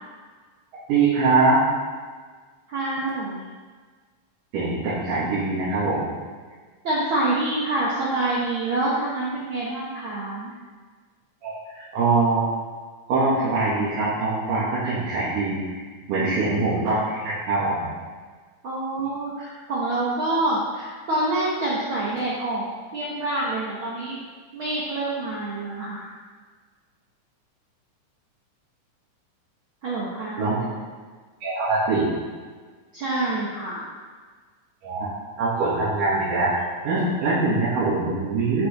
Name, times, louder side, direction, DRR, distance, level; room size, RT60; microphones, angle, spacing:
voice 1, 0.9-1.6 4.5-6.1 11.4-12.4 13.1-15.8 16.1-17.9 30.4-30.6 31.4-32.1 34.8-35.1 35.4-38.7, right 3 dB, 85° right, -10 dB, 3.5 m, -23 dB
voice 2, 2.7-3.4 6.8-10.5 16.2-16.4 18.6-24.2 24.5-26.1 29.8-30.6 32.9-33.8, right 2 dB, 55° right, -7 dB, 1.6 m, -27 dB
11.5 x 6.2 x 3.4 m, 1.5 s
omnidirectional pair, 3.7 m